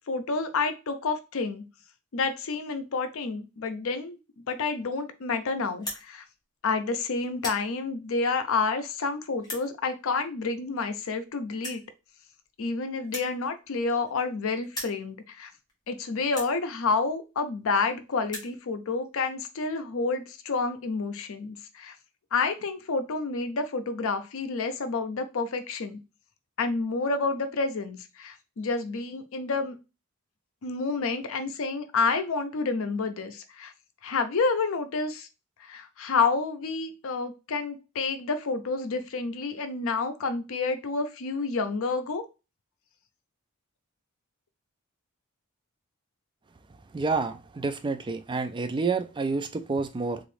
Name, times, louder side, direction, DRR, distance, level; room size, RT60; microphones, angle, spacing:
voice 1, 0.1-1.6 2.1-6.2 6.6-11.8 12.6-15.5 15.9-21.9 22.3-26.0 26.6-29.8 30.6-33.7 34.0-35.3 35.6-42.3, left 4 dB, 65° left, 8 dB, 0.5 m, -29 dB
sound 1, 5.7-6.0 6.7-6.9 7.2-7.6 8.4-8.5 9.4-9.7 10.7-10.8 11.0-11.1 11.6-11.9 13.0-14.4 14.6-15.0 15.7-15.8 16.3-16.5 17.5-17.6 17.8-17.9 18.1-18.5, left 1 dB, 20° left, 1.1 m, -38 dB
voice 2, 46.9-50.2, right 4 dB, 20° right, 8 dB, 0.3 m, -29 dB
3.0 x 2.5 x 3.2 m, 0.28 s
head